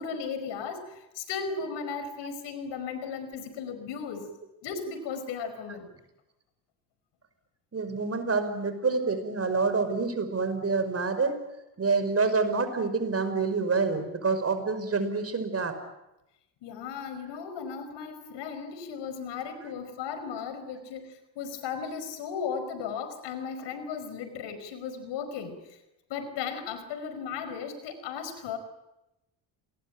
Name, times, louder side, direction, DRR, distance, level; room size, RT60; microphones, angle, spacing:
voice 1, 0.0-4.3 4.6-5.9 16.6-25.8 26.1-28.6, left 6 dB, 90° left, 10 dB, 5.1 m, -36 dB
voice 2, 7.7-11.4 11.8-15.8, right 4 dB, 35° right, 9 dB, 5.4 m, -27 dB
28.0 x 21.0 x 8.8 m, 0.92 s
cardioid pair, 95°, 41 cm